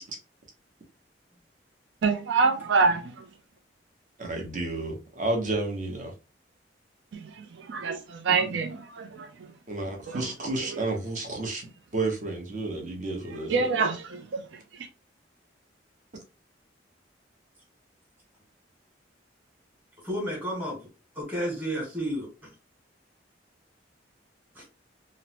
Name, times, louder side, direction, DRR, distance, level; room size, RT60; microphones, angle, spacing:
voice 1, 2.0-3.2 7.1-9.3 10.1-10.2 10.6-10.8 13.5-14.4, right 4 dB, 75° right, 0.4 m, -26 dB
voice 2, 4.2-6.1 9.7-13.7, right 2 dB, 45° right, 0.8 m, -31 dB
voice 3, 20.0-20.8 21.1-22.5 24.5-24.6, equal, 10° right, 1.1 m, -31 dB
3.0 x 2.0 x 2.8 m
head